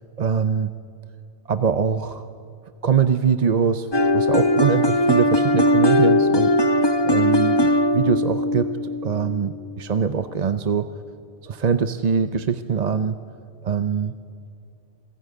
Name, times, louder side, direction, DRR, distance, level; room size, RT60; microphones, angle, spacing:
voice 1, 0.2-0.7 1.5-2.2 2.8-3.9 4.1-10.9 11.4-13.2 13.6-14.1, right 6 dB, 45° right, 10 dB, 0.7 m, -23 dB
sound 1, 3.9-9.7, left 1 dB, 25° left, 1.0 m, -19 dB
27.0 x 16.5 x 9.4 m, 2.5 s
omnidirectional pair, 1.1 m